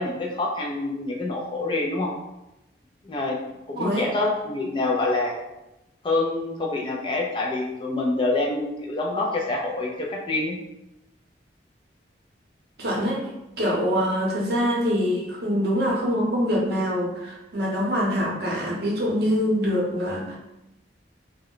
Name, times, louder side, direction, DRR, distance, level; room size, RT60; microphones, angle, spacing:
voice 1, 0.0-2.1 3.0-3.4 3.7-5.4 6.0-10.6, left 2 dB, 25° left, -1 dB, 0.3 m, -26 dB
voice 2, 3.8-4.1 12.8-13.2 13.6-20.4, equal, 60° right, -3 dB, 0.7 m, -24 dB
2.2 x 2.1 x 3.7 m, 0.92 s
head